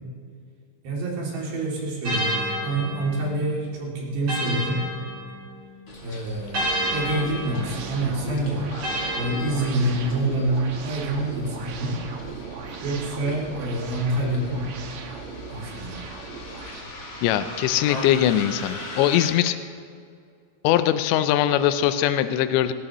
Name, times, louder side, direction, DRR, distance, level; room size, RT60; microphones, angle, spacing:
voice 1, 0.8-4.9 6.0-6.7 6.9-8.6 9.1-12.0 12.8-14.7 15.5-16.0, right 1 dB, 60° right, -4 dB, 4.7 m, -27 dB
sound 1, 2.0-5.8 6.5-10.2, equal, 35° right, 4.7 m, -31 dB
Bus, 5.9-19.3, left 2 dB, 65° left, 1.0 m, -41 dB
sound 2, 6.5-16.8, right 5 dB, 90° right, 4.0 m, -37 dB
voice 2, 17.2-19.6 20.6-22.7, left 11 dB, 85° left, 11 dB, 2.6 m, -21 dB
19.0 x 18.0 x 3.0 m, 2.3 s
omnidirectional pair, 5.8 m